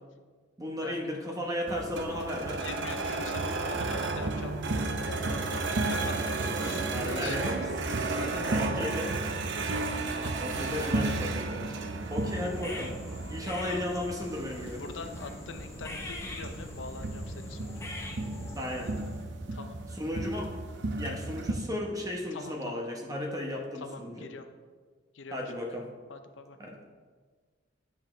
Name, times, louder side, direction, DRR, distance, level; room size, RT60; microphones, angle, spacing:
voice 1, 0.6-2.6 6.6-7.7 8.5-9.2 10.4-11.8 12.1-13.0 13.3-14.8 18.5-18.9 19.9-20.6 20.9-24.3 25.3-25.9 26.6-27.0, left 1 dB, 20° right, 0 dB, 1.2 m, -35 dB
sound 1, 1.7-21.5, right 3 dB, 70° right, 0.6 m, -33 dB
voice 2, 2.6-4.6 5.0-7.7 8.2-8.7 10.2-10.5 13.4-13.9 14.8-17.9 19.5-19.8 22.3-22.8 23.8-24.4 25.1-25.4 26.1-26.6, left 4 dB, 80° left, 8 dB, 0.6 m, -43 dB
sound 2, 12.0-19.3, left 1 dB, 15° left, 0.8 m, -43 dB
9.1 x 6.2 x 3.3 m, 1.5 s
head